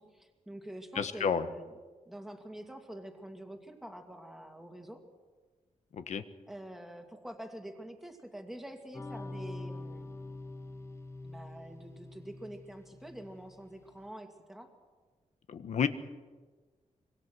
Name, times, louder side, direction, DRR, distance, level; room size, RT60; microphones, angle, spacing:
voice 1, 0.0-1.7 2.1-5.0 6.5-10.2 11.2-14.7, right 1 dB, ahead, 3 dB, 2.4 m, -46 dB
voice 2, 1.0-1.4 5.9-6.2 15.5-15.9, left 7 dB, 65° left, 10 dB, 1.4 m, -30 dB
sound 1, 8.9-13.8, left 2 dB, 20° left, 0.8 m, -45 dB
25.5 x 24.0 x 6.3 m, 1.4 s
wide cardioid pair, 170°, 13 cm